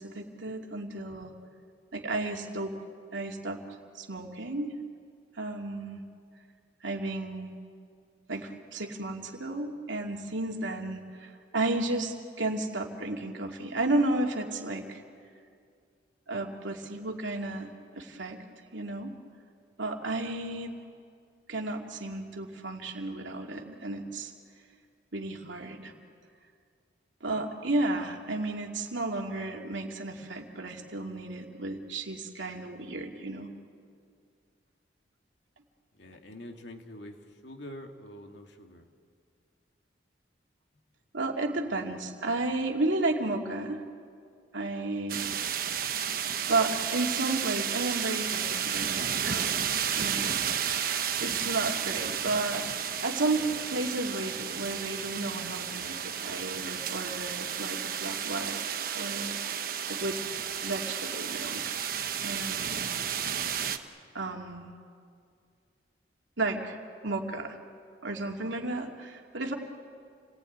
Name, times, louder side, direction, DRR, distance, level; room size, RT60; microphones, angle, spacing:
voice 1, 0.0-1.3 1.9-2.8 3.1-3.6 3.9-4.8 5.4-6.0 6.8-7.5 8.3-15.0 16.3-18.4 18.7-19.1 19.8-20.8 21.5-24.3 25.1-25.9 27.2-33.5 41.1-43.8 44.5-45.3 46.5-50.3 50.6-52.7 53.0-58.6 58.9-59.4 59.9-60.2 60.6-61.8 62.2-62.9 64.1-64.7 66.4-66.8 67.0-67.6 68.0-69.5, right 2 dB, 80° right, 1 dB, 2.7 m, -33 dB
voice 2, 35.9-38.9 40.7-40.8, left 1 dB, 70° left, 3 dB, 2.2 m, -46 dB
sound 1, 45.1-63.8, right 8 dB, 50° right, 1.2 m, -32 dB
29.0 x 19.0 x 9.5 m, 2.2 s
head